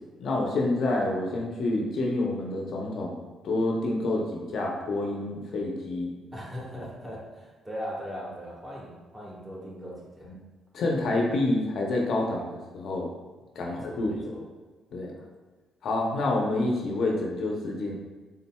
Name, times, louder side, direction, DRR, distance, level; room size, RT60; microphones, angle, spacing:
voice 1, 0.2-3.2 3.4-6.1 10.3-10.4 10.7-13.1 13.5-14.3 14.9-15.1 15.8-18.0, left 2 dB, 65° left, 0 dB, 0.6 m, -28 dB
voice 2, 6.3-10.3 13.6-14.4, equal, 10° right, -5 dB, 1.4 m, -39 dB
4.1 x 3.8 x 2.2 m, 1.3 s
cardioid pair, 90°, 0 cm